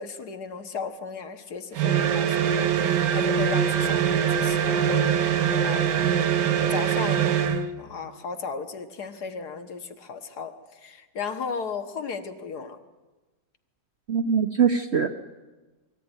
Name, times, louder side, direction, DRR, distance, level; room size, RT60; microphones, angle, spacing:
voice 1, 0.0-6.1 6.6-7.3 7.8-12.8, left 5 dB, 65° left, 8 dB, 1.9 m, -35 dB
sound 1, 1.7-7.7, right 8 dB, 75° right, 1.6 m, -23 dB
voice 2, 14.1-15.1, right 6 dB, 50° right, 7 dB, 0.9 m, -22 dB
23.0 x 14.5 x 9.7 m, 1.2 s
omnidirectional pair, 1.9 m